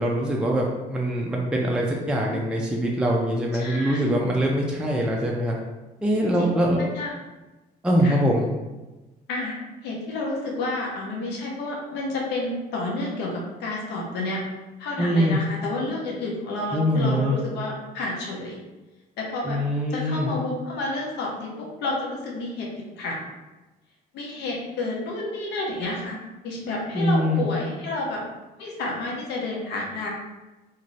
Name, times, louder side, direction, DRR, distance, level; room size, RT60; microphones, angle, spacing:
voice 1, 0.0-5.6 6.0-6.8 7.8-8.5 15.0-15.4 16.7-17.4 19.4-20.3 26.9-27.5, equal, 5° right, -2 dB, 0.3 m, -23 dB
voice 2, 2.0-2.5 3.5-4.1 6.4-6.5 6.8-7.1 8.0-8.2 9.3-9.6 9.8-14.4 14.8-18.6 19.2-19.6 19.9-22.7 23.0-23.2 24.1-26.2 26.4-28.2 28.6-30.1, left 2 dB, 80° left, -2 dB, 0.7 m, -30 dB
2.5 x 2.5 x 3.0 m, 1.1 s
cardioid pair, 110°, 17 cm